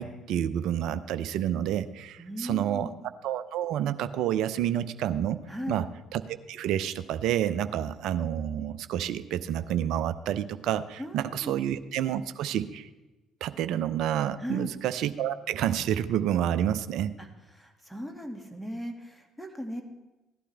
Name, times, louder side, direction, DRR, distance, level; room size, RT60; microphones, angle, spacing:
voice 1, 0.0-2.9 3.2-5.4 5.7-5.9 6.1-6.2 6.5-12.9 13.4-17.1, right 10 dB, 65° right, 13 dB, 0.6 m, -29 dB
voice 2, 2.2-3.0 5.5-5.8 11.0-11.5 14.4-14.7 17.2-17.3 17.5-19.8, equal, 5° left, 4 dB, 2.2 m, -37 dB
16.5 x 11.5 x 3.4 m, 1.1 s
hypercardioid pair, 50°, 0 cm